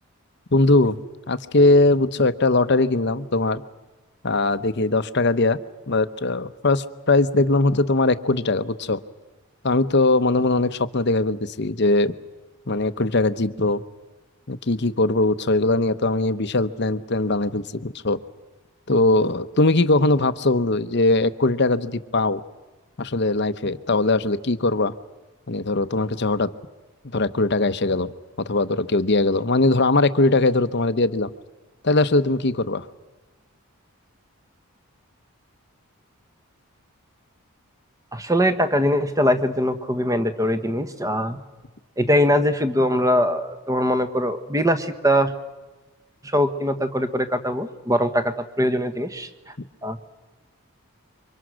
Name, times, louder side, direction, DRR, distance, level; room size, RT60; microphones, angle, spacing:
voice 1, 0.5-1.0 1.3-3.6 4.2-5.6 5.9-9.0 9.6-12.2 12.7-13.8 14.5-18.2 18.9-22.4 23.0-24.9 25.5-26.5 27.1-28.1 28.5-31.3 31.8-32.9, left 2 dB, 50° left, 12 dB, 0.8 m, -20 dB
voice 2, 38.1-41.4 42.0-45.3 46.2-49.3 49.8-50.1, equal, 15° right, 9 dB, 1.3 m, -22 dB
28.5 x 24.5 x 6.3 m, 1.2 s
head